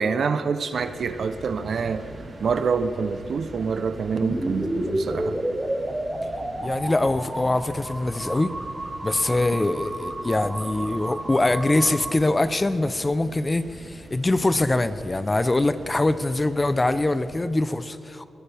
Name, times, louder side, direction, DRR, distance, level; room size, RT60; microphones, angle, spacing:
voice 1, 0.0-2.1 2.4-5.4, right 5 dB, 65° right, 10 dB, 0.8 m, -26 dB
sound 1, 0.7-17.5, right 2 dB, 50° right, 4.0 m, -42 dB
sound 2, 4.2-12.1, right 1 dB, 10° right, 1.7 m, -31 dB
voice 2, 6.6-8.5 9.0-18.3, left 2 dB, 25° left, 12 dB, 0.7 m, -23 dB
23.0 x 17.0 x 3.5 m, 2.5 s
cardioid pair, 75°, 0 cm